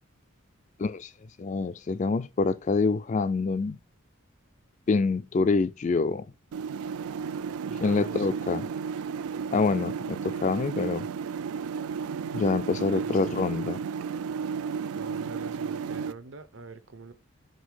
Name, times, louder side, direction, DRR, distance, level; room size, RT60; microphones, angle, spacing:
voice 1, 0.8-1.1 1.4-3.8 4.9-6.2 7.8-8.7 9.5-11.1 12.3-13.8, left 4 dB, 35° left, 0.3 m, -26 dB
sound 1, 6.5-16.1, right 6 dB, 85° right, 0.4 m, -33 dB
voice 2, 7.7-8.3 12.8-13.4 14.9-17.1, right 3 dB, 60° right, 0.7 m, -45 dB
5.3 x 4.0 x 4.7 m
head